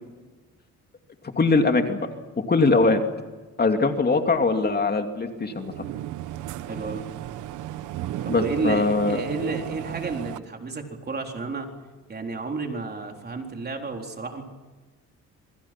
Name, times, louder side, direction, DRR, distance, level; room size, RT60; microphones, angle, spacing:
voice 1, 1.4-2.0 2.5-3.0 3.6-5.7 8.3-9.2, left 3 dB, 35° left, 5 dB, 2.6 m, -21 dB
sound 1, 5.4-10.4, right 13 dB, 90° right, 1.1 m, -34 dB
voice 2, 6.7-7.0 8.2-11.7 12.1-14.4, right 3 dB, 35° right, 3 dB, 4.0 m, -31 dB
27.0 x 24.0 x 6.1 m, 1.3 s
cardioid pair, 90°, 30 cm